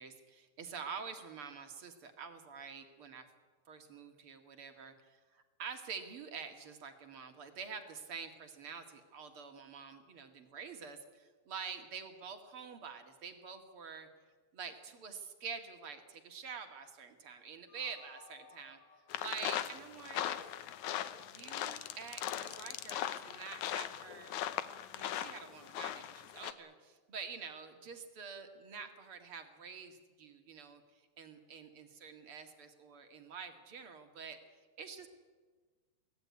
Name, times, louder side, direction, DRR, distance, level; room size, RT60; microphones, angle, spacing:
voice 1, 0.0-3.3 3.7-14.1 14.5-18.8 19.2-20.6 21.2-24.4 24.9-34.4 34.8-35.1, right 6 dB, 45° right, 6 dB, 2.2 m, -47 dB
sound 1, 17.7-20.8, left 5 dB, 90° left, 8.4 m, -61 dB
sound 2, 19.1-26.5, left 11 dB, 75° left, 1.8 m, -39 dB
24.0 x 17.5 x 9.6 m, 1.4 s
omnidirectional pair, 4.6 m